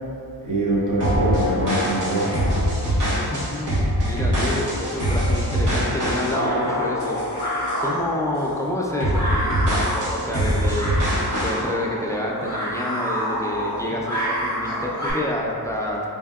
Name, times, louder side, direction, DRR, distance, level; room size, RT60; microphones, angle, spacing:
voice 1, 0.4-2.4 9.7-9.8 11.3-11.4, right 1 dB, 45° right, -5 dB, 0.8 m, -24 dB
sound 1, 1.0-8.0 8.3-8.6 9.0-11.6, equal, 70° right, 1.4 m, -23 dB
voice 2, 3.3-7.2 7.8-10.9 11.4-16.0, left 1 dB, 10° left, -3 dB, 0.4 m, -28 dB
sound 2, 5.2-15.1, equal, 20° right, 1.2 m, -30 dB
sound 3, 8.6-15.2, right 6 dB, 65° left, 0.5 m, -45 dB
4.4 x 2.6 x 2.3 m, 2.5 s
cardioid pair, 60°, 42 cm